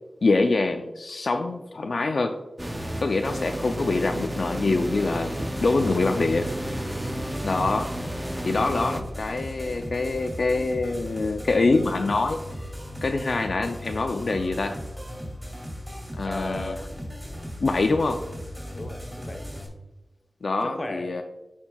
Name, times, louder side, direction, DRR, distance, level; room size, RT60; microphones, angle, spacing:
voice 1, 0.2-2.4 3.0-6.5 7.4-7.9 8.4-12.4 13.0-14.8 16.2-16.8 17.6-18.2 20.4-21.2, left 3 dB, 70° left, 5 dB, 0.4 m, -25 dB
sound 1, 2.6-9.0, right 1 dB, 15° right, 0.6 m, -32 dB
sound 2, 5.3-19.7, equal, 5° left, 2.3 m, -37 dB
voice 2, 6.8-7.2 16.2-16.9 18.7-19.5 20.6-21.2, left 1 dB, 35° left, 5 dB, 0.8 m, -36 dB
13.0 x 4.4 x 2.3 m, 1.0 s
wide cardioid pair, 85°, 0 cm